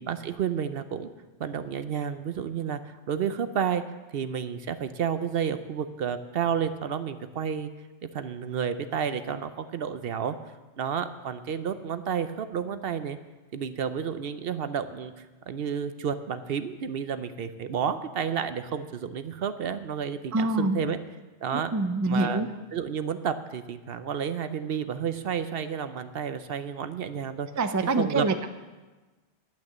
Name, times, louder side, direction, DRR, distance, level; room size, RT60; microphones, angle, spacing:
voice 1, 0.1-1.1 1.4-7.7 8.0-10.4 10.8-13.2 13.5-21.0 21.4-21.7 22.0-22.4 22.7-27.5 27.8-28.3, right 7 dB, 65° right, 11 dB, 0.8 m, -31 dB
voice 2, 20.3-20.8 21.5-22.5 27.6-28.5, right 2 dB, 25° right, 8 dB, 0.4 m, -25 dB
10.5 x 9.4 x 7.3 m, 1.2 s
omnidirectional pair, 1.1 m